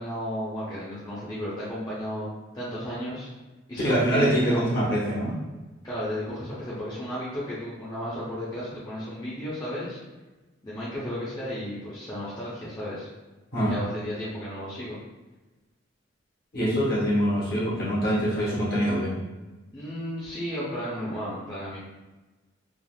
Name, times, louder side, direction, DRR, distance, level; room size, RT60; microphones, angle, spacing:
voice 1, 0.0-2.3 2.5-3.3 3.7-4.7 5.8-10.0 10.6-13.1 13.7-15.0 19.7-21.8, equal, 20° left, -10 dB, 0.6 m, -33 dB
voice 2, 3.8-5.4 13.5-13.8 16.5-19.1, equal, 50° left, -6 dB, 1.0 m, -24 dB
3.4 x 2.3 x 2.3 m, 1.1 s
head